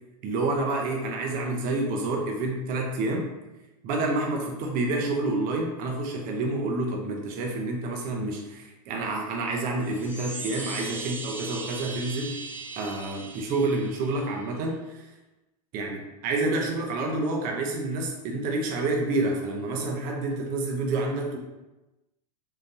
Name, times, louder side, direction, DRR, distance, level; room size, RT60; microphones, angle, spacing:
voice 1, 0.2-3.3 3.8-12.4 12.8-15.1 15.7-21.4, right 2 dB, 40° right, 1 dB, 0.6 m, -28 dB
Chime, 9.7-14.4, right 3 dB, 10° right, 0.8 m, -39 dB
3.7 x 2.6 x 2.6 m, 1.0 s
hypercardioid pair, 105°, 21 cm